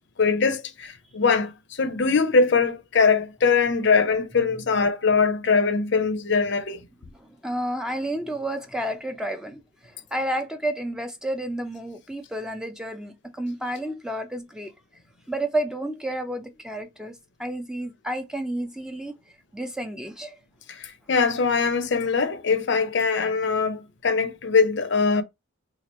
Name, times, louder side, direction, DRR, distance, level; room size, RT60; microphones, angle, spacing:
voice 1, 0.2-6.8 20.7-25.2, left 5 dB, 55° left, 0.5 m, -22 dB
voice 2, 7.1-14.7 15.3-19.1 19.5-20.4, right 1 dB, 5° right, 0.4 m, -31 dB
3.0 x 2.4 x 4.1 m
head